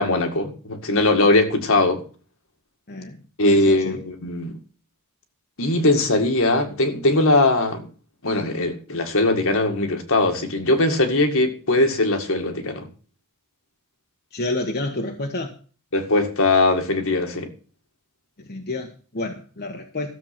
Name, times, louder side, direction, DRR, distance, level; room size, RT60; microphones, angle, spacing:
voice 1, 0.0-2.0 3.4-4.6 5.6-7.8 8.2-12.9 15.9-17.5, left 2 dB, 65° left, 2.1 m, -20 dB
voice 2, 2.9-4.0 14.3-15.6 18.4-20.1, left 2 dB, 45° left, 1.3 m, -30 dB
13.5 x 7.4 x 6.0 m
head